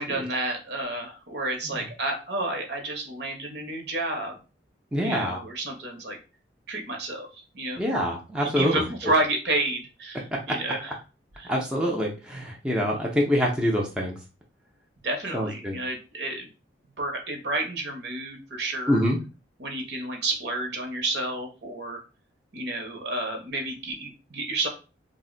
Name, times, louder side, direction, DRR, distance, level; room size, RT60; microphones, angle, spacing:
voice 1, 0.0-4.4 5.0-6.2 6.7-7.8 8.4-11.0 11.4-11.5 15.0-16.5 17.0-19.0 19.6-22.0 22.5-24.7, right 2 dB, 60° right, 2 dB, 0.8 m, -30 dB
voice 2, 4.9-5.4 7.8-8.8 10.5-10.6 11.5-14.1 15.3-15.8 18.9-19.2, equal, 5° right, -2 dB, 0.5 m, -25 dB
2.5 x 2.1 x 3.7 m, 0.32 s
head